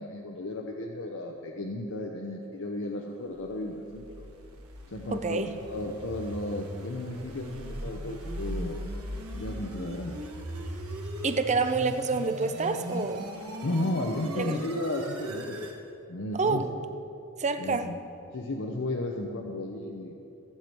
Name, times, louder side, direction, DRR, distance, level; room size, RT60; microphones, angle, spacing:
voice 1, 0.0-4.3 4.9-8.8 9.3-10.2 13.6-15.7 16.1-16.6 17.6-18.0 18.3-20.1, left 1 dB, 60° left, 1 dB, 0.8 m, -34 dB
sound 1, 3.6-15.8, right 1 dB, 70° right, 1.5 m, -39 dB
voice 2, 5.1-5.5 11.2-13.2 14.4-14.5 16.3-16.7 17.4-17.9, right 4 dB, 30° right, 9 dB, 0.7 m, -27 dB
18.5 x 8.2 x 4.5 m, 2.8 s
head